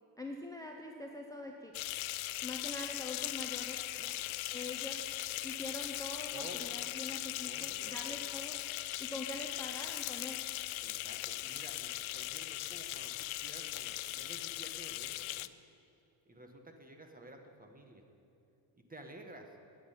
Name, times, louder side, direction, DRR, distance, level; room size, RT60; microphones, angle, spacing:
voice 1, 0.2-1.7 2.4-3.8 4.5-5.0 5.4-6.3 6.6-8.6 9.0-10.4, left 2 dB, 5° left, 1 dB, 0.8 m, -44 dB
sound 1, 1.7-15.5, left 17 dB, 85° left, 0.5 m, -39 dB
voice 2, 6.3-6.8 7.4-8.2 10.8-15.5 16.2-18.0 18.7-19.6, right 1 dB, 20° right, 4 dB, 1.4 m, -52 dB
9.4 x 9.0 x 9.3 m, 2.7 s
cardioid pair, 110°, 47 cm